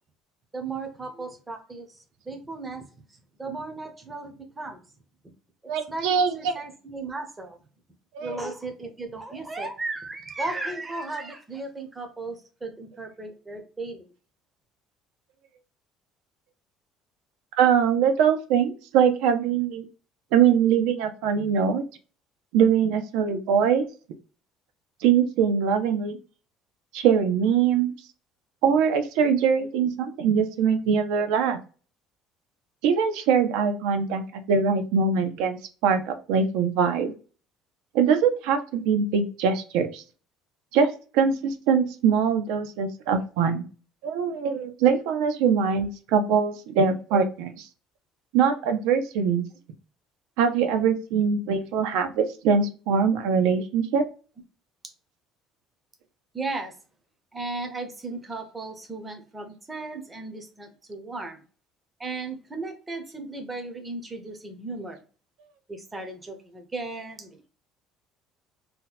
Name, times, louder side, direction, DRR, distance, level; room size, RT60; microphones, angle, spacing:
voice 1, 0.5-1.9 2.3-2.9 3.4-4.8 5.9-7.6 8.2-14.1 56.3-56.7 57.3-61.4 62.0-65.0 65.7-67.5, right 3 dB, 10° right, 4 dB, 0.5 m, -35 dB
voice 2, 5.7-6.6 8.1-8.4 17.6-19.8 20.3-21.8 22.5-23.9 25.0-26.2 26.9-28.0 28.6-31.6 32.8-37.1 37.9-40.0 40.7-43.7 44.0-47.7 48.3-49.4 50.4-54.0, right 6 dB, 85° right, 7 dB, 0.5 m, -22 dB
2.8 x 2.1 x 3.9 m, 0.37 s
cardioid pair, 175°, 0 cm